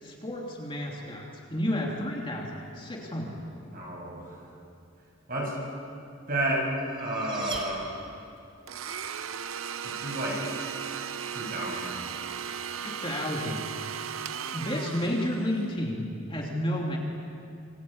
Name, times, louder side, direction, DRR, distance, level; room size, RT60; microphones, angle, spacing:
voice 1, 0.0-3.3 12.8-13.6 14.5-17.0, left 1 dB, 25° left, -1 dB, 3.1 m, -31 dB
voice 2, 3.7-4.3 5.3-5.6 6.3-6.7 7.0-7.9 9.8-10.5 11.3-12.1, right 1 dB, 45° right, -2 dB, 7.4 m, -31 dB
sound 1, 6.8-8.5, right 3 dB, 25° right, 3.4 m, -41 dB
Domestic sounds home sounds, 8.7-15.7, right 7 dB, 85° right, 0.8 m, -36 dB
27.0 x 22.5 x 8.9 m, 2.5 s
head